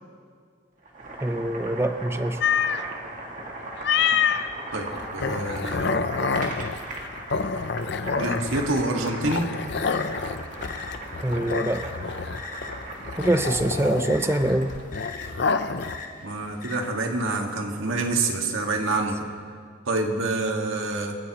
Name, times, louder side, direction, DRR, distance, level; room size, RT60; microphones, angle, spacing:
Boiling, 0.8-14.9, right 2 dB, 40° right, 2.0 m, -38 dB
voice 1, 1.2-2.4 11.2-11.9 13.2-14.7, right 1 dB, 10° right, 9 dB, 0.5 m, -24 dB
sound 1, 2.4-2.8 3.8-4.5 4.9-16.0, left 5 dB, 55° left, 0.6 m, -27 dB
voice 2, 4.7-6.1 8.2-9.5 16.2-19.3 19.9-21.2, right 2 dB, 80° right, 2 dB, 1.7 m, -27 dB
sound 2, 9.4-16.8, left 4 dB, 40° left, 1.2 m, -41 dB
26.5 x 13.5 x 3.0 m, 2.1 s
head